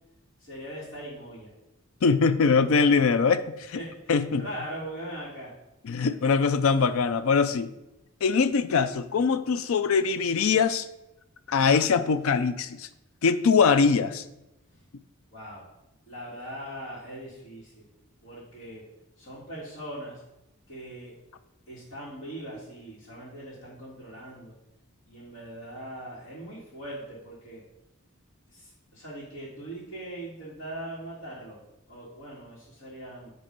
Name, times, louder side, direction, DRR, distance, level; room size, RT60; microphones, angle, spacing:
voice 1, 0.4-1.5 3.8-5.5 14.7-14.8 15.3-15.7 16.1-17.9 18.2-18.8 19.2-20.2 20.7-21.1 21.7-24.5 25.1-27.6 28.5-31.6 31.9-33.3, right 1 dB, 60° left, -7 dB, 1.9 m, -40 dB
voice 2, 2.0-3.8 4.1-4.5 5.8-7.7 8.2-10.9 11.5-12.9 13.2-14.2, left 5 dB, 75° left, 13 dB, 0.4 m, -22 dB
8.4 x 3.1 x 5.2 m, 0.93 s
head